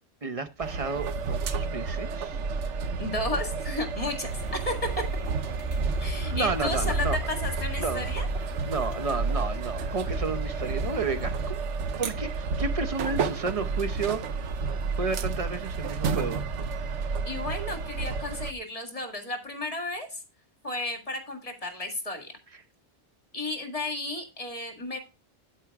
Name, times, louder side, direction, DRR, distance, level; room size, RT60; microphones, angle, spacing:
voice 1, 0.2-2.4 6.3-7.3 7.8-8.1 8.7-11.6 12.0-14.2 15.0-16.4, right 4 dB, 35° right, 0.7 m, -31 dB
sound 1, 0.6-18.5, right 4 dB, 85° right, 1.1 m, -31 dB
voice 2, 3.0-5.0 6.0-8.3 17.3-20.2 20.6-22.3 23.3-25.0, left 2 dB, 30° left, 2.0 m, -33 dB
sound 2, 4.2-11.5, right 1 dB, 60° right, 3.2 m, -37 dB
11.5 x 4.8 x 4.7 m
omnidirectional pair, 1.2 m